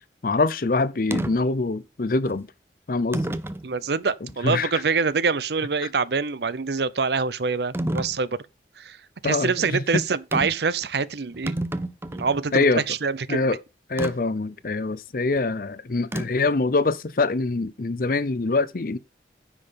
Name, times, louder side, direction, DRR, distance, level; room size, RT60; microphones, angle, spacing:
voice 1, 0.2-2.5 2.9-3.3 4.4-4.8 9.2-10.0 12.5-12.8 13.3-13.6 13.9-19.0, left 3 dB, 50° left, 0.6 m, -24 dB
sound 1, 1.1-1.3 2.3-2.4 3.1-3.7 4.3-4.4 7.7-8.2 10.3-10.7 11.0-11.1 11.3-12.4 14.0-14.1 16.1-16.5, right 1 dB, 15° right, 0.6 m, -29 dB
voice 2, 3.6-8.4 8.8-9.0 9.2-11.6 12.1-13.4, right 5 dB, 65° right, 0.6 m, -25 dB
9.8 x 5.7 x 5.2 m
head